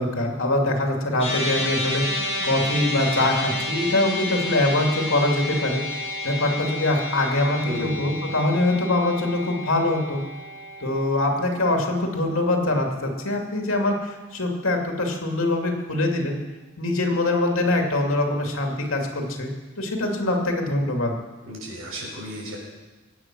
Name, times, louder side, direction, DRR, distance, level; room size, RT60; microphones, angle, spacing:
voice 1, 0.0-10.2 10.8-16.4 16.8-19.5 19.8-21.1, left 2 dB, 75° left, 2 dB, 2.6 m, -23 dB
sound 1, 1.2-13.6, left 1 dB, 25° left, 6.8 m, -31 dB
voice 2, 7.6-8.1 21.4-22.6, right 1 dB, 80° right, -1 dB, 5.8 m, -34 dB
22.5 x 9.0 x 6.1 m, 1.2 s
head